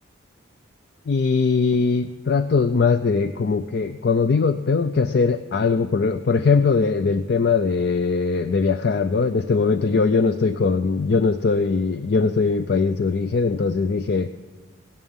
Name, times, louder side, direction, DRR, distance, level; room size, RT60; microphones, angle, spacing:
voice 1, 1.1-14.3, left 4 dB, 55° left, 11 dB, 0.4 m, -21 dB
16.0 x 11.0 x 7.1 m, 1.5 s
head